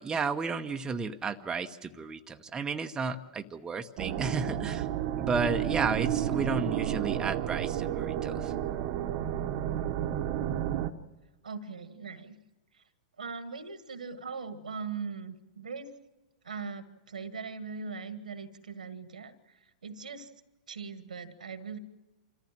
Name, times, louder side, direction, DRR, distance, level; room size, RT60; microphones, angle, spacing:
voice 1, 0.0-4.9 5.2-8.5, right 4 dB, 15° right, 6 dB, 1.0 m, -33 dB
sound 1, 4.0-10.9, right 11 dB, 50° right, 1.1 m, -31 dB
voice 2, 11.4-12.4 12.7-12.8 13.2-15.9 16.4-19.3 19.8-20.3 20.7-21.8, right 5 dB, 85° right, 12 dB, 1.7 m, -40 dB
26.5 x 14.5 x 7.5 m, 1.1 s
hypercardioid pair, 105°, 4 cm